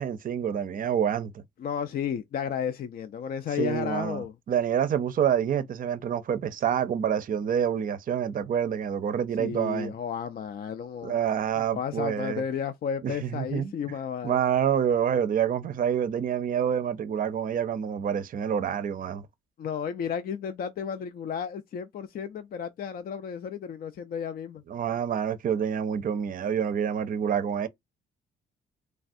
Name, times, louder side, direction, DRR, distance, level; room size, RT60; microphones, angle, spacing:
voice 1, 0.0-1.4 3.6-9.9 11.0-12.4 13.0-13.7 14.2-19.2 24.7-27.7, right 8 dB, 45° right, 0.5 m, -27 dB
voice 2, 1.6-4.4 9.4-11.1 11.6-14.4 19.6-24.6, left 8 dB, 50° left, 0.4 m, -33 dB
3.2 x 2.3 x 2.6 m
cardioid pair, 90°, 20 cm